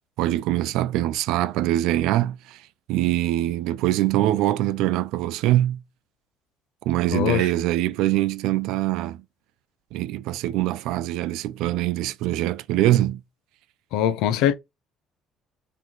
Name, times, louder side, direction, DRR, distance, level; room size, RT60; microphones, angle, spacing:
voice 1, 0.2-2.6 2.9-5.8 6.9-9.2 9.9-13.2, right 14 dB, 75° right, 0.4 m, -23 dB
voice 2, 7.1-7.5 13.9-14.5, left 10 dB, 80° left, 0.6 m, -22 dB
3.9 x 3.1 x 4.1 m
cardioid pair, 165°, 0 cm